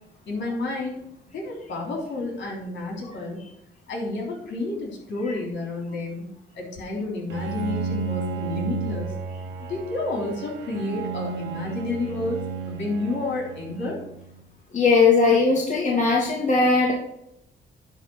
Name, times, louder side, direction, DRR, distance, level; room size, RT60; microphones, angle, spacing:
voice 1, 0.3-1.0 1.3-3.4 3.9-6.2 6.5-9.1 9.7-12.4 12.7-13.9, left 2 dB, 65° left, 0 dB, 3.5 m, -30 dB
Bowed string instrument, 7.3-14.4, right 5 dB, 75° right, 1.3 m, -33 dB
voice 2, 14.7-16.9, left 4 dB, 40° left, -2 dB, 2.0 m, -19 dB
10.5 x 3.7 x 6.4 m, 0.78 s
cardioid pair, 90°, 20 cm